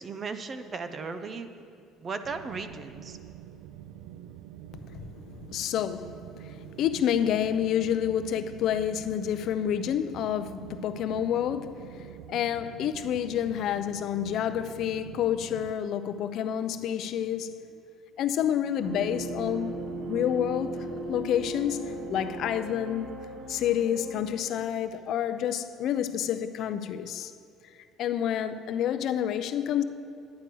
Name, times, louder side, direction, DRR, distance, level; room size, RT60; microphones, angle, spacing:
voice 1, 0.0-1.5 2.0-3.2, right 4 dB, 35° right, 10 dB, 0.6 m, -36 dB
sound 1, 2.2-15.7, right 11 dB, 90° right, 0.3 m, -46 dB
voice 2, 4.7-17.6 18.2-19.7 20.1-23.1 23.5-27.3 28.0-29.8, left 9 dB, 60° left, 11 dB, 0.5 m, -29 dB
sound 2, 18.8-24.5, right 2 dB, 60° right, 1.3 m, -37 dB
10.5 x 9.1 x 4.6 m, 2.4 s
cardioid pair, 120°, 0 cm